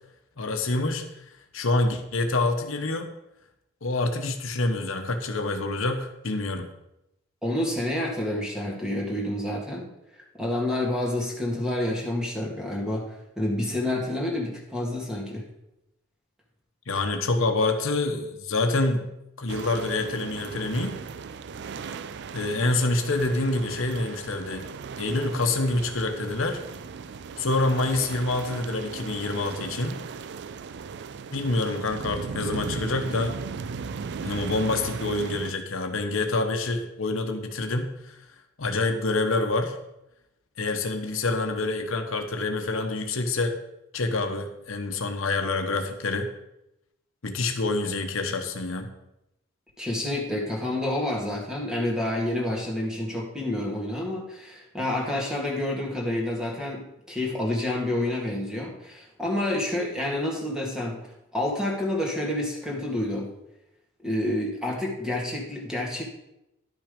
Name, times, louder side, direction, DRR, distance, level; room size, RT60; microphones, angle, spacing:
voice 1, 0.4-1.0 1.5-3.1 3.8-6.7 16.9-19.1 19.4-21.0 22.3-24.7 25.0-26.6 27.4-30.0 31.3-33.4 34.2-38.2 38.6-39.8 40.6-43.6 43.9-46.3 47.2-48.9, left 2 dB, 75° left, 5 dB, 1.0 m, -27 dB
voice 2, 7.4-9.9 10.4-15.5 49.8-56.8 57.1-60.9 61.3-63.3 64.0-66.0, left 1 dB, 5° right, -2 dB, 2.0 m, -28 dB
sound 1, 19.5-35.5, right 5 dB, 55° right, 0.4 m, -37 dB
11.5 x 6.0 x 5.1 m, 0.88 s
head